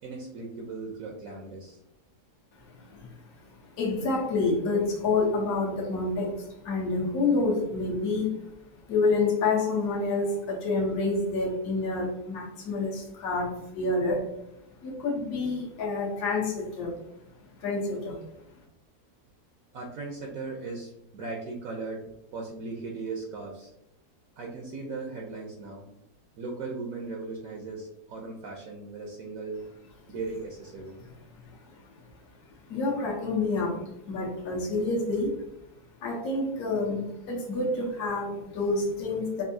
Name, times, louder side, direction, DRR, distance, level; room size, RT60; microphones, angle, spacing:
voice 1, 0.0-1.8 19.7-23.7 24.4-25.9 26.4-29.6 30.1-31.0, right 3 dB, 65° right, 0 dB, 1.0 m, -38 dB
voice 2, 2.6-8.5 8.9-14.3 14.8-17.0 17.6-18.2 31.4-31.8 32.7-35.4 36.0-39.4, left 3 dB, 65° left, -5 dB, 1.4 m, -28 dB
5.3 x 2.6 x 2.6 m, 0.81 s
omnidirectional pair, 1.8 m